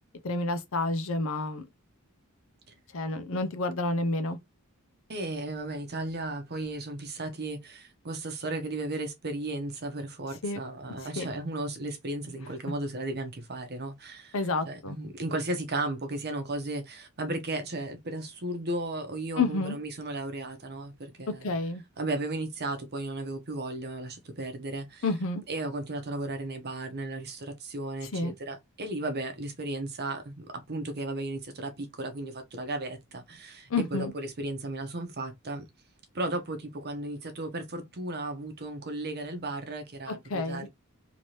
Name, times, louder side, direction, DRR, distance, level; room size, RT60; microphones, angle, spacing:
voice 1, 0.2-1.6 2.9-4.4 10.4-10.6 11.2-11.3 14.3-15.0 19.4-19.8 21.4-21.8 25.0-25.4 28.1-28.3 33.7-34.1 40.1-40.7, left 3 dB, 60° left, 0.7 m, -29 dB
voice 2, 5.1-14.3 14.6-21.5 22.0-25.0 25.5-35.6 36.1-40.7, right 2 dB, 45° right, 0.8 m, -35 dB
3.0 x 2.8 x 3.1 m
head